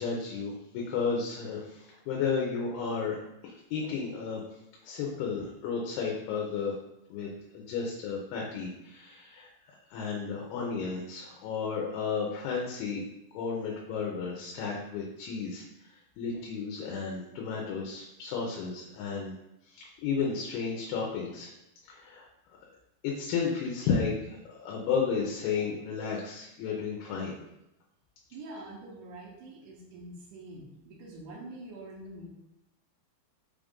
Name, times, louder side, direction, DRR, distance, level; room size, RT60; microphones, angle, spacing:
voice 1, 0.0-3.2 3.4-4.4 4.8-6.8 7.1-9.5 9.9-13.0 13.3-15.6 16.2-19.3 19.7-21.5 21.9-22.3 23.0-27.4, left 5 dB, 80° left, -2 dB, 2.5 m, -33 dB
voice 2, 28.3-32.3, right 2 dB, 75° right, -5 dB, 1.9 m, -45 dB
6.0 x 2.5 x 3.6 m, 0.86 s
omnidirectional pair, 4.7 m